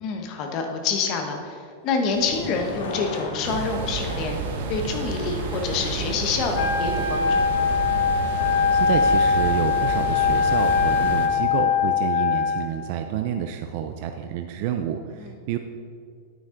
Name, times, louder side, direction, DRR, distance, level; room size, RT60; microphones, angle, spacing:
voice 1, 0.0-4.4 4.7-7.7 15.2-15.3, left 4 dB, 30° left, 3 dB, 1.0 m, -27 dB
sound 1, 1.9-13.7, left 2 dB, 85° left, 1.9 m, -40 dB
sound 2, 3.4-11.3, right 4 dB, 70° right, 1.1 m, -30 dB
Wind instrument woodwind instrument, 6.5-12.7, left 6 dB, 55° left, 1.0 m, -22 dB
voice 2, 8.4-15.6, right 9 dB, 40° right, 6 dB, 0.4 m, -29 dB
9.4 x 9.1 x 3.8 m, 2.2 s
supercardioid pair, 175°, 0 cm